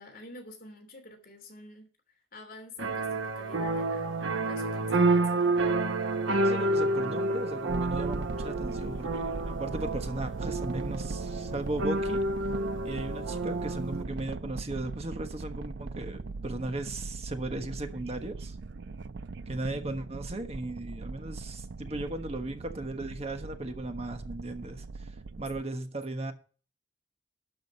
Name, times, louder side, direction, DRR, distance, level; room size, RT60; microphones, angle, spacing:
voice 1, 0.0-1.9 2.3-5.6, left 2 dB, 50° left, 3.0 m, -48 dB
sound 1, 2.8-14.0, right 2 dB, 90° right, 1.2 m, -29 dB
voice 2, 6.4-12.2 12.8-18.6 19.5-26.3, right 1 dB, 35° right, 1.3 m, -37 dB
sound 2, 7.7-25.6, right 3 dB, 60° right, 0.5 m, -40 dB
12.0 x 5.2 x 7.4 m
head